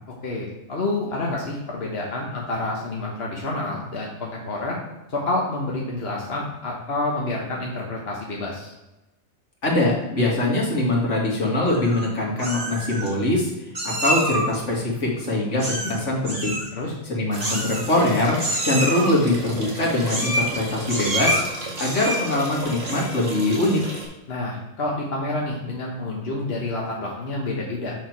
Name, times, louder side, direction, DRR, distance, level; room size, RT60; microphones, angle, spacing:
voice 1, 0.2-4.8 5.1-8.7 16.8-16.9 24.3-27.9, left 2 dB, 60° left, -2 dB, 1.4 m, -28 dB
voice 2, 9.6-16.6 17.0-21.4 21.8-23.8, left 1 dB, 80° left, -3 dB, 2.3 m, -23 dB
Meow, 11.7-12.1 12.4-13.1 13.8-14.6 15.6-16.0 16.2-16.7 17.4-18.1 18.4-19.1 20.1-20.6 20.9-21.4 21.8-22.4 22.8-23.2, right 1 dB, 35° right, 1.6 m, -27 dB
sound 1, 17.3-24.1, right 2 dB, 90° right, 2.2 m, -35 dB
6.4 x 6.1 x 4.7 m, 1.0 s
omnidirectional pair, 1.2 m